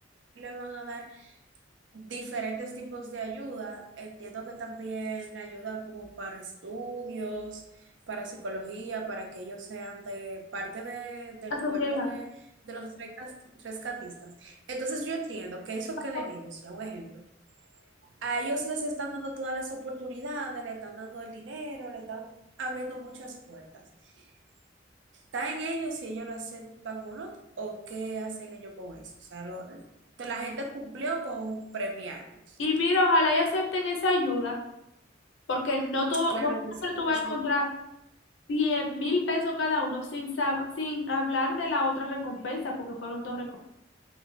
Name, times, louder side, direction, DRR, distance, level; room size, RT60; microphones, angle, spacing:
voice 1, 0.4-1.3 1.9-12.2 12.6-17.1 18.2-22.2 22.6-23.9 24.2-24.3 25.3-29.8 30.2-32.6 36.3-37.4, right 2 dB, 75° right, 2 dB, 0.5 m, -37 dB
voice 2, 11.6-12.1 32.6-34.6 35.5-36.5 36.8-37.6 38.5-43.6, left 2 dB, 80° left, 1 dB, 0.6 m, -27 dB
2.4 x 2.2 x 3.9 m, 0.85 s
head